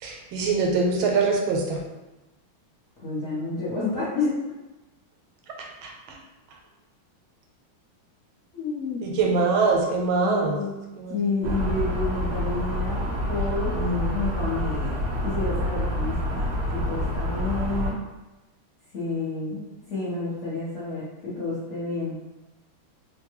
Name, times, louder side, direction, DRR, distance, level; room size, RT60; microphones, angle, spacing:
voice 1, 0.0-1.8 5.8-5.9 9.0-10.6 11.0-11.2 13.8-14.1, right 4 dB, 85° right, 0 dB, 1.4 m, -23 dB
voice 2, 3.0-4.3 8.5-9.0 10.2-10.8 11.1-13.9 14.1-18.0 18.9-22.2, left 3 dB, 50° left, -10 dB, 0.9 m, -30 dB
sound 1, 11.4-17.9, equal, 70° right, 0.9 m, -27 dB
3.4 x 2.2 x 3.0 m, 1.1 s
omnidirectional pair, 2.2 m